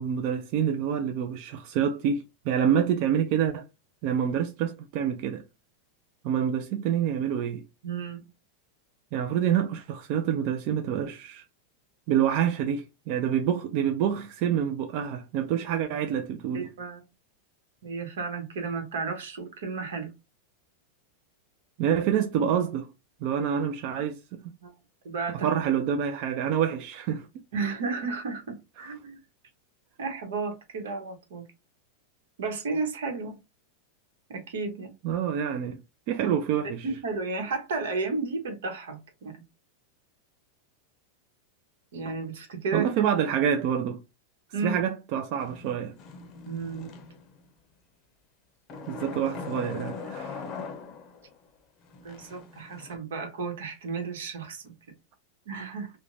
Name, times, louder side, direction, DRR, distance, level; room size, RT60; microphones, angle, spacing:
voice 1, 0.0-3.7 4.0-5.4 6.2-7.6 9.1-11.4 12.1-16.7 21.8-22.9 23.2-24.4 25.4-27.3 35.0-35.8 36.1-36.9 42.7-44.0 44.6-46.0 48.9-50.4, right 8 dB, 50° right, 0.4 m, -27 dB
voice 2, 7.8-8.2 16.5-17.0 17.8-20.1 24.6-24.8 25.0-25.5 27.5-29.2 30.0-31.4 32.4-33.4 34.3-34.9 36.8-39.4 41.9-42.9 44.5-44.8 46.5-46.9 52.0-54.7 55.5-55.9, right 4 dB, 85° right, 1.0 m, -33 dB
sound 1, 45.4-47.4 48.7-51.3 51.9-53.0, left 5 dB, 35° left, 0.6 m, -41 dB
2.5 x 2.1 x 3.1 m
supercardioid pair, 145°, 0 cm